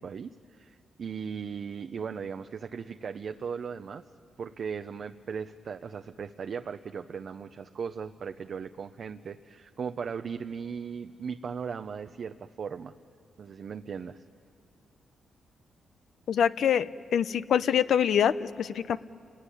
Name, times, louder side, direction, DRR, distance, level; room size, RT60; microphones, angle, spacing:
voice 1, 0.0-4.0 4.4-12.9 13.4-14.2, right 6 dB, 55° right, 7 dB, 0.7 m, -37 dB
voice 2, 16.3-19.0, left 8 dB, 70° left, 14 dB, 0.7 m, -25 dB
29.5 x 19.5 x 10.0 m, 2.3 s
cardioid pair, 105°, 0 cm